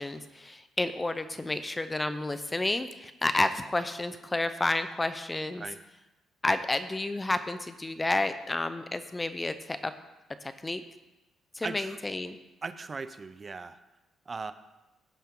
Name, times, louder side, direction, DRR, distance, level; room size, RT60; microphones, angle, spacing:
voice 1, 0.0-5.6 6.4-9.9 10.4-10.8 11.5-12.4, left 2 dB, 20° left, 11 dB, 0.6 m, -30 dB
voice 2, 11.6-12.0 12.6-13.8 14.3-14.5, right 4 dB, 30° right, 11 dB, 0.6 m, -38 dB
16.0 x 5.8 x 3.8 m, 1.0 s
cardioid pair, 90°, 0 cm